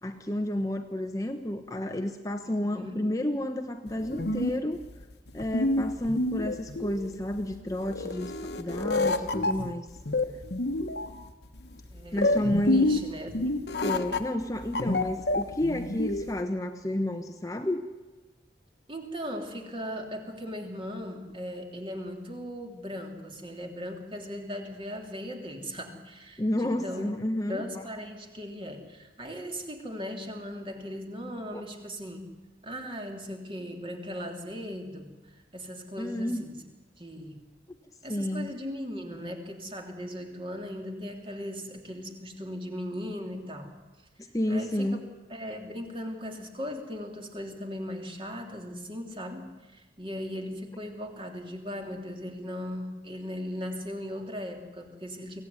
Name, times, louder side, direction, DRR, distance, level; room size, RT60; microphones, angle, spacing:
voice 1, 0.0-4.8 5.3-9.9 12.1-12.9 13.8-17.9 26.4-27.6 31.5-31.6 36.0-36.4 38.1-38.5 44.3-45.0, left 1 dB, 20° left, 6 dB, 1.1 m, -30 dB
voice 2, 2.4-3.0 8.7-8.8 11.9-13.5 18.9-27.1 27.5-32.3 32.6-36.6 37.0-37.4 38.0-43.7 44.5-45.0 45.3-55.4, equal, 30° right, 3 dB, 3.2 m, -38 dB
sound 1, 3.9-16.4, left 2 dB, 65° left, 1.3 m, -29 dB
24.0 x 16.5 x 9.6 m, 1.2 s
head